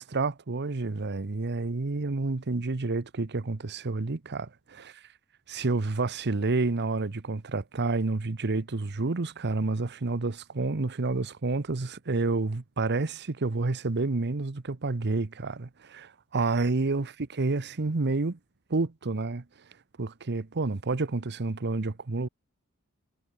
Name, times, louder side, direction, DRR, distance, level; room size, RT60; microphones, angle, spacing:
voice 1, 0.0-5.0 5.5-18.4 18.7-19.4 20.0-22.3, right 3 dB, 50° right, 0.9 m, -29 dB
head